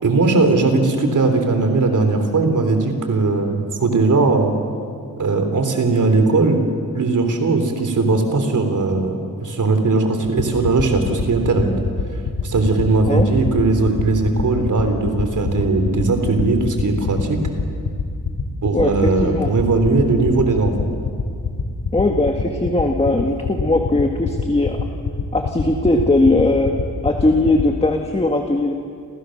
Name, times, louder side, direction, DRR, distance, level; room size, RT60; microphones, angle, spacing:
voice 1, 0.0-4.5 5.2-6.6 6.9-11.7 12.4-17.4 18.6-20.9, right 3 dB, 50° right, 6 dB, 3.4 m, -18 dB
sound 1, 10.4-27.6, left 6 dB, 70° left, 3.6 m, -23 dB
voice 2, 18.7-19.5 21.9-24.9 25.3-28.7, left 2 dB, 15° left, 3 dB, 1.7 m, -19 dB
29.5 x 28.0 x 6.6 m, 2.3 s
wide cardioid pair, 130°, 38 cm